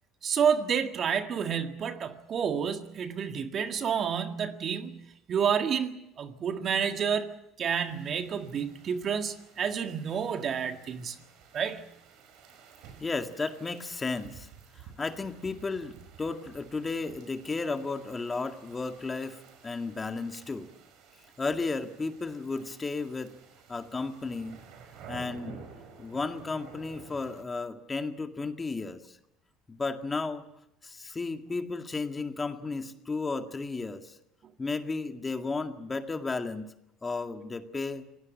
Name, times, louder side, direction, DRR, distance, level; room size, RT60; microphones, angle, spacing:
voice 1, 0.2-5.0 5.3-11.2 11.5-11.8, right 7 dB, 45° right, 1.9 m, -29 dB
sound 1, 7.7-27.4, right 5 dB, 70° right, 5.4 m, -52 dB
voice 2, 13.0-14.5 14.8-19.4 19.6-20.7 21.4-23.3 23.7-24.6 25.1-25.6 26.0-29.2 29.7-30.5 30.8-34.2 34.6-36.7 37.0-38.0, left 3 dB, 25° left, 2.0 m, -34 dB
26.5 x 18.0 x 7.4 m
supercardioid pair, 80°, 0 cm